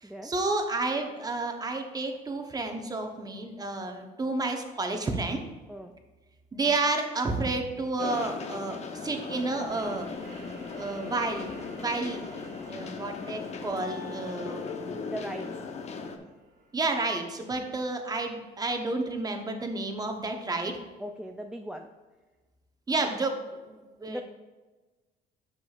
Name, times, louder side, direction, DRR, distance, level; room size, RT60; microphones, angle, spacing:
voice 1, 0.0-5.4 6.5-10.1 10.7-11.5 11.8-14.6 16.7-20.8 22.9-24.2, right 3 dB, 20° right, 4 dB, 0.9 m, -31 dB
sound 1, 8.0-16.2, left 5 dB, 40° left, 0.8 m, -38 dB
sound 2, 9.7-19.0, right 2 dB, 85° right, 2.1 m, -53 dB
sound 3, 13.8-15.9, left 4 dB, 70° left, 2.0 m, -49 dB
voice 2, 14.8-15.5 21.0-21.9 24.1-24.2, equal, 5° right, 4 dB, 0.4 m, -38 dB
9.5 x 6.1 x 2.4 m, 1.2 s
cardioid pair, 110°, 17 cm